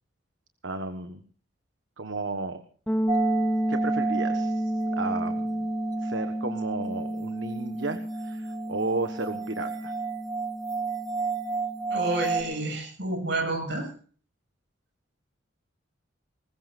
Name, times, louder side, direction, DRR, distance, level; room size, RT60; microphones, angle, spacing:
voice 1, 0.6-1.2 2.0-2.6 3.7-5.7 6.0-9.9, right 3 dB, 80° right, 8 dB, 1.4 m, -33 dB
sound 1, 2.9-12.6, equal, 5° left, 0.8 m, -31 dB
sound 2, 3.1-12.4, right 5 dB, 20° right, 1.3 m, -33 dB
voice 2, 11.9-13.9, right 2 dB, 60° right, 4 dB, 7.5 m, -29 dB
21.5 x 20.0 x 2.6 m, 0.41 s
head